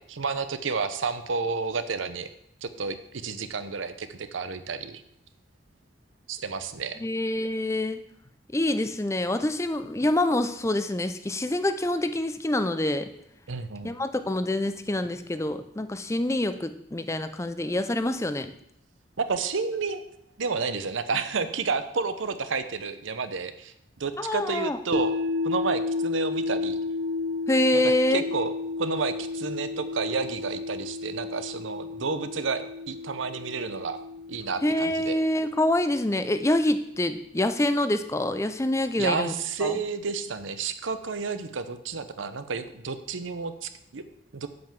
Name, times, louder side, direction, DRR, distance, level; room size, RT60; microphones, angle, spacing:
voice 1, 0.0-2.3 2.6-5.0 6.3-7.0 13.5-13.9 19.2-20.0 20.4-25.1 25.4-26.8 28.1-28.5 28.8-34.0 34.3-35.2 39.0-44.0 44.3-44.5, right 4 dB, 85° right, 11 dB, 0.8 m, -31 dB
voice 2, 7.0-8.0 8.5-13.1 13.8-18.5 24.2-24.8 27.5-28.2 34.6-39.3 39.6-39.7, left 1 dB, 15° left, 10 dB, 0.5 m, -26 dB
sound 1, 24.9-37.0, left 3 dB, 50° right, 0.8 m, -32 dB
7.7 x 5.7 x 7.4 m, 0.75 s
head